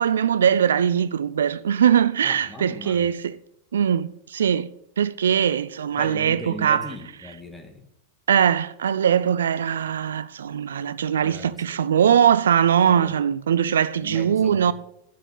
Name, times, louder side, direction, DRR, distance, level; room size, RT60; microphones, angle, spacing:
voice 1, 0.0-3.3 3.7-4.7 5.0-6.9 8.3-14.7, right 8 dB, 65° right, 0.5 m, -21 dB
voice 2, 2.2-3.1 6.0-7.8 11.2-11.6 12.8-13.2 14.0-14.7, left 1 dB, 10° left, 2.0 m, -38 dB
10.5 x 8.7 x 8.5 m
figure-of-eight pair, 90°, 0 cm